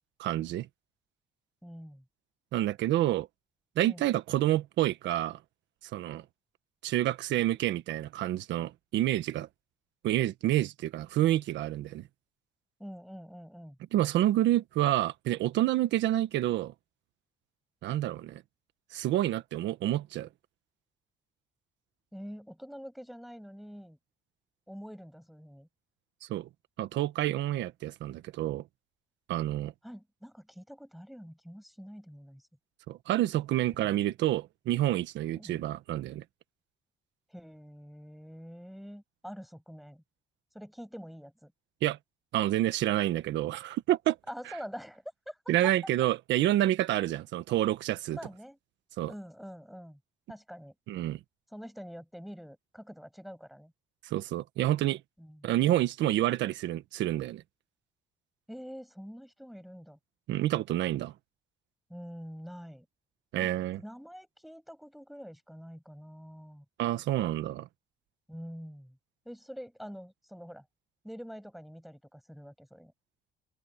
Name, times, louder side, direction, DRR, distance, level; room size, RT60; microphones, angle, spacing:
voice 1, 0.2-0.7 2.5-3.3 3.8-5.4 5.9-6.2 6.8-9.5 10.0-12.0 13.9-16.7 17.8-18.4 18.9-20.3 26.3-26.5 26.8-28.6 29.3-29.7 32.9-36.2 41.8-42.0 42.3-44.2 45.5-48.2 49.0-49.1 50.9-51.2 54.0-55.0 55.4-57.4 60.3-61.1 63.3-63.8 66.8-67.7, right 14 dB, 80° right, 1.5 m, -28 dB
voice 2, 1.6-2.0 3.8-4.0 12.8-13.8 22.1-24.0 24.7-25.7 29.8-32.5 35.3-35.6 37.3-40.0 40.5-41.5 44.3-45.7 48.1-48.6 49.1-50.0 50.3-50.7 51.5-53.7 55.2-55.5 58.5-60.0 61.9-62.9 63.4-66.6 68.3-69.0 69.2-70.6 71.0-72.9, equal, ahead, 7.9 m, -46 dB
open air
cardioid pair, 130°, 18 cm